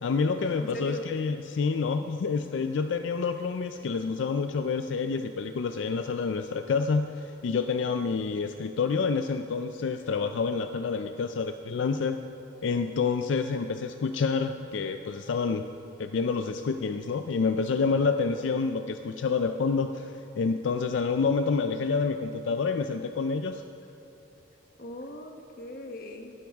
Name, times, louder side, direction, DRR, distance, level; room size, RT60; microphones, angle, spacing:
voice 1, 0.0-12.2 12.6-15.6 16.0-23.6, left 5 dB, 75° left, 8 dB, 0.4 m, -28 dB
voice 2, 0.6-1.1 24.8-26.3, left 1 dB, 50° left, 4 dB, 1.0 m, -39 dB
16.5 x 11.5 x 3.5 m, 2.9 s
head